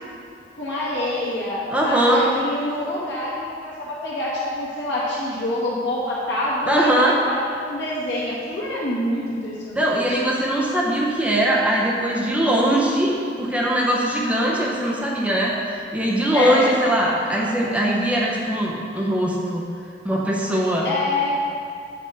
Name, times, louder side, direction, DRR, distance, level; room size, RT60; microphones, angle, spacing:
voice 1, 0.5-10.2 16.3-16.7 20.8-21.5, left 1 dB, 80° left, -6 dB, 1.6 m, -26 dB
voice 2, 1.7-2.3 6.6-7.2 9.7-19.6 20.0-20.9, right 1 dB, 5° right, -4 dB, 0.7 m, -21 dB
7.6 x 5.1 x 3.4 m, 2.4 s
head